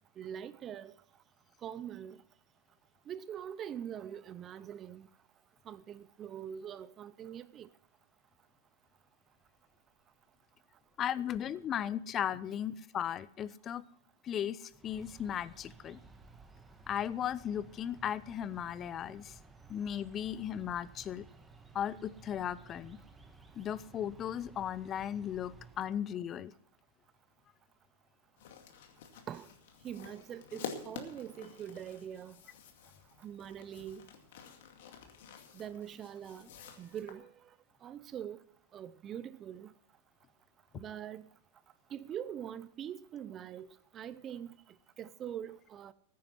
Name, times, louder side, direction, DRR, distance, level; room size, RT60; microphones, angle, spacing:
voice 1, 0.2-0.9 1.6-2.2 3.1-5.1 5.7-7.7 29.3-29.5 29.8-32.3 33.2-34.0 35.5-36.5 36.8-37.3 37.8-38.4 38.7-39.7 40.7-41.3 41.9-43.7 43.9-44.5 45.0-45.9, right 9 dB, 30° right, 0.6 m, -43 dB
voice 2, 11.0-13.8 14.2-16.0 16.9-19.3 19.7-21.2 21.7-23.0 23.6-26.5, left 9 dB, 30° left, 0.7 m, -36 dB
sound 1, 14.7-26.1, right 4 dB, 15° right, 1.4 m, -56 dB
sound 2, 28.4-37.1, left 7 dB, 65° left, 2.3 m, -49 dB
15.0 x 9.5 x 6.1 m
hypercardioid pair, 110°, 0 cm